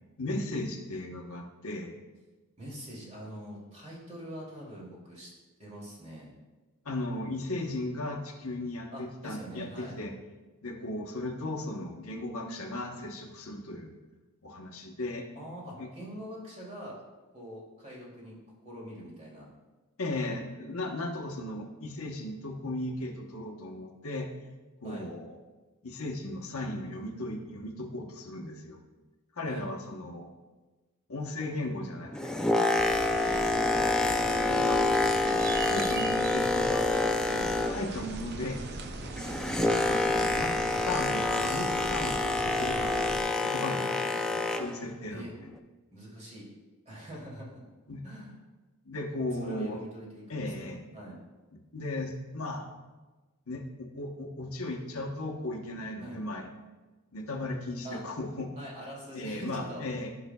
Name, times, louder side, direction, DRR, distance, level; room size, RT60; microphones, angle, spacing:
voice 1, 0.2-2.0 6.8-10.1 10.6-13.9 14.4-15.3 15.8-15.9 20.0-24.3 24.8-25.4 25.8-28.8 29.4-30.3 31.1-32.7 33.2-33.6 34.5-34.8 35.2-36.8 37.3-38.6 39.9-43.0 43.4-45.2 47.9-48.0 48.9-49.8 50.3-50.8 51.7-52.8 53.5-56.5 57.1-58.5 59.1-60.1, left 2 dB, 70° left, 2 dB, 1.0 m, -36 dB
voice 2, 2.6-5.3 5.6-6.3 8.9-10.0 15.3-17.0 17.3-18.3 18.6-19.5 24.8-25.1 29.5-29.7 39.6-39.8 45.1-45.3 45.9-46.5 46.9-47.6 48.0-48.3 49.4-51.2 56.0-56.2 57.8-58.0 58.6-59.8, equal, 30° right, -5 dB, 2.6 m, -44 dB
Boat Water vehicle, 32.0-38.1 38.4-44.8 45.5-45.6, left 2 dB, 5° left, 0.4 m, -27 dB
sound 1, 32.8-43.2, right 3 dB, 50° right, 0.6 m, -40 dB
13.5 x 5.9 x 2.3 m, 1.2 s
head